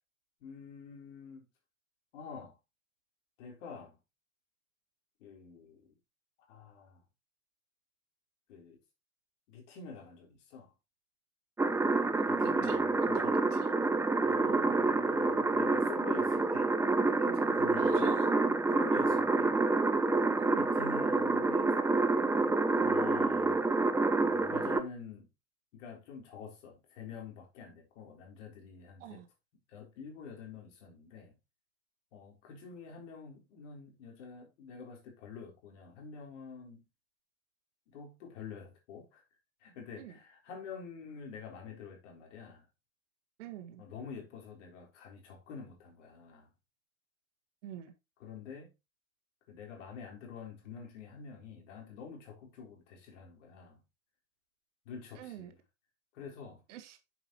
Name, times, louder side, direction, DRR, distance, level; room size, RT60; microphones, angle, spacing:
voice 1, 0.4-1.4 2.1-2.6 3.4-4.0 5.2-5.9 6.5-7.0 8.5-8.8 9.5-10.7 12.3-13.3 14.2-16.7 17.2-18.1 18.7-19.6 20.6-21.8 22.7-23.6 24.2-25.3 25.7-29.2 29.7-31.3 32.1-36.8 37.9-39.2 39.6-42.7 43.8-46.5 48.2-48.7 49.5-53.8 54.9-55.5 56.1-56.6, left 6 dB, 60° left, 3.9 m, -47 dB
sound 1, 11.6-24.8, right 3 dB, 5° right, 0.6 m, -28 dB
voice 2, 12.2-12.8 13.1-13.7 17.7-18.4 18.6-18.9 20.4-20.7 29.0-29.3 40.0-40.2 43.4-43.8 47.6-47.9 55.1-55.5 56.7-57.0, right 11 dB, 60° right, 1.8 m, -46 dB
8.6 x 7.2 x 3.1 m
figure-of-eight pair, 80°, 41 cm